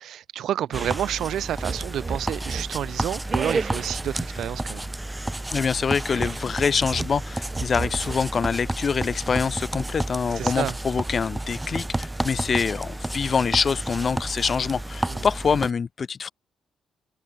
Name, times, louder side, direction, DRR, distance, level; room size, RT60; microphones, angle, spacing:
voice 1, 0.0-4.9 10.4-10.7 15.1-15.2, right 11 dB, 70° right, 1.5 m, -29 dB
sound 1, 0.7-15.7, right 1 dB, 10° right, 1.0 m, -31 dB
sound 2, 0.7-1.1 1.6-2.8 3.3-4.1 6.0-6.5 6.9-8.4, right 4 dB, 35° right, 1.7 m, -32 dB
voice 2, 5.5-16.3, left 6 dB, 45° left, 3.6 m, -25 dB
cardioid pair, 90°, 0 cm